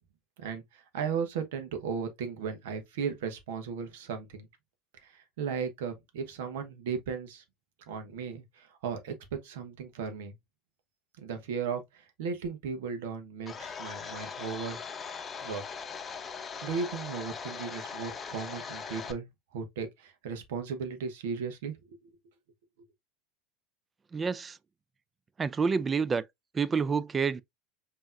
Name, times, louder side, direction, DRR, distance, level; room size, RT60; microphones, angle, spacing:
voice 1, 0.4-4.5 5.0-7.4 7.9-10.3 11.2-14.8 15.4-15.6 16.3-22.1, right 6 dB, 75° right, 1.1 m, -36 dB
Domestic sounds home sounds, 13.5-19.1, left 6 dB, 30° left, 0.7 m, -40 dB
voice 2, 24.1-24.6 25.4-26.2 26.5-27.4, right 5 dB, 25° right, 0.4 m, -28 dB
5.4 x 3.0 x 2.5 m
hypercardioid pair, 85°, 0 cm